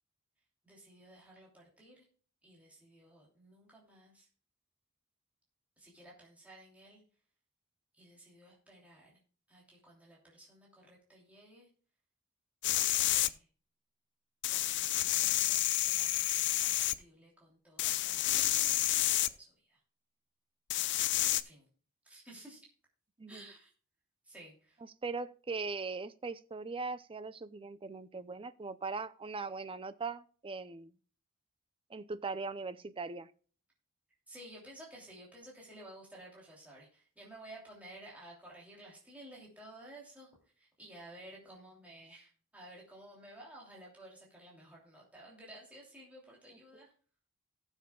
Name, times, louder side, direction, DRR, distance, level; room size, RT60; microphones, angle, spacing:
voice 1, 0.6-2.1 2.4-4.3 5.8-7.0 7.9-9.2 9.5-11.7 13.0-13.5 14.5-19.8 21.4-21.7 22.0-22.7 23.3-23.7 24.2-24.8 34.3-46.9, right 1 dB, 5° right, -4 dB, 3.0 m, -54 dB
sound 1, 12.6-13.3 14.4-16.9 17.8-19.3 20.7-21.4, left 14 dB, 55° left, 0.5 m, -29 dB
voice 2, 23.2-23.5 24.8-31.0 31.9-33.3, right 4 dB, 25° right, 14 dB, 0.5 m, -40 dB
18.0 x 7.2 x 2.3 m, 0.41 s
head